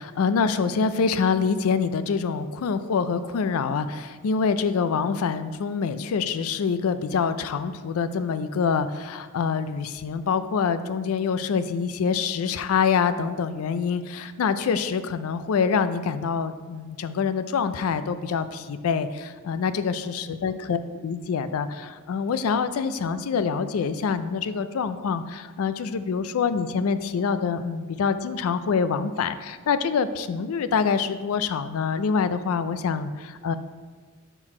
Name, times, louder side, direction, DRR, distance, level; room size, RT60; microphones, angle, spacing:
voice 1, 0.0-33.6, left 5 dB, 80° left, 12 dB, 0.4 m, -25 dB
5.9 x 4.5 x 4.3 m, 1.4 s
head